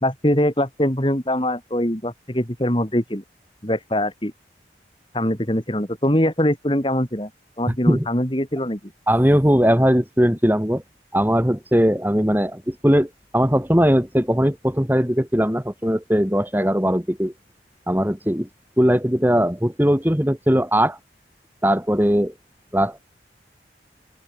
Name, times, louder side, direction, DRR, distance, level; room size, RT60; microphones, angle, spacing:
voice 1, 0.0-3.2 3.6-4.3 5.1-7.3 7.6-8.8, left 1 dB, 25° left, 3.6 m, -22 dB
voice 2, 7.7-8.1 9.1-10.8 11.1-17.3 17.9-18.5 18.8-21.0 21.6-22.3 22.7-23.1, equal, 10° right, 2.5 m, -19 dB
open air
head